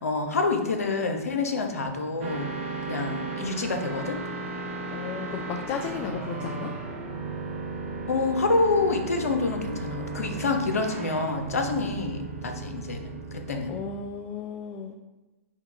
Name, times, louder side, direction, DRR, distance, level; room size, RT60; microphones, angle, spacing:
voice 1, 0.0-2.5 2.9-4.2 8.1-13.7, left 3 dB, 85° left, 5 dB, 0.7 m, -27 dB
sound 1, 2.2-14.0, right 3 dB, 65° right, 0.8 m, -35 dB
voice 2, 4.9-6.7 13.7-14.9, left 6 dB, 30° left, 3 dB, 0.4 m, -34 dB
4.4 x 2.2 x 4.6 m, 1.1 s
hypercardioid pair, 115°, 8 cm